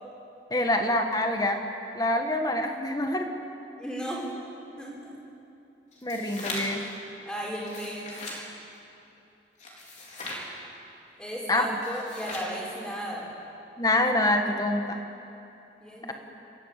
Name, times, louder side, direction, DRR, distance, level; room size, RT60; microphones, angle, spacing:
voice 1, 0.5-1.6 1.9-3.3 6.0-6.8 11.5-11.7 13.8-15.0, left 1 dB, 20° left, 4 dB, 1.5 m, -25 dB
voice 2, 3.8-4.3 4.8-5.1 7.2-8.1 11.2-13.3 15.8-16.1, equal, 5° left, -5 dB, 5.0 m, -35 dB
sound 1, 5.9-6.9 7.5-8.4 9.6-10.5 11.7-12.6, left 2 dB, 40° left, 3.9 m, -38 dB
28.0 x 14.0 x 8.3 m, 2.8 s
head